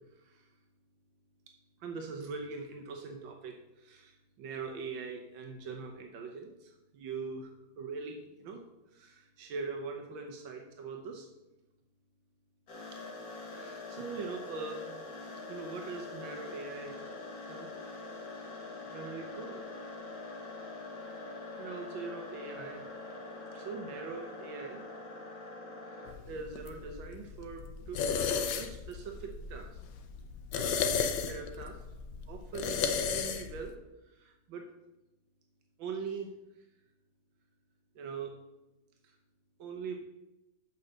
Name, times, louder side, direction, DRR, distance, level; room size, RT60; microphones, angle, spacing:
voice 1, 1.8-7.5 7.8-8.6 8.9-11.3 12.9-13.0 13.5-15.0 15.5-17.0 17.5-17.7 18.9-19.6 21.6-22.8 23.5-24.8 25.8-29.8 30.5-31.8 32.3-33.8 34.1-34.7 35.8-36.3 37.9-38.3 39.0-39.1 39.6-40.0, right 4 dB, 85° right, 3 dB, 1.6 m, -42 dB
sound 1, 12.7-26.1, left 2 dB, 50° left, 1.9 m, -44 dB
sound 2, 26.1-33.7, left 6 dB, 75° left, 1.3 m, -35 dB
7.1 x 5.5 x 6.4 m, 0.97 s
omnidirectional pair, 2.0 m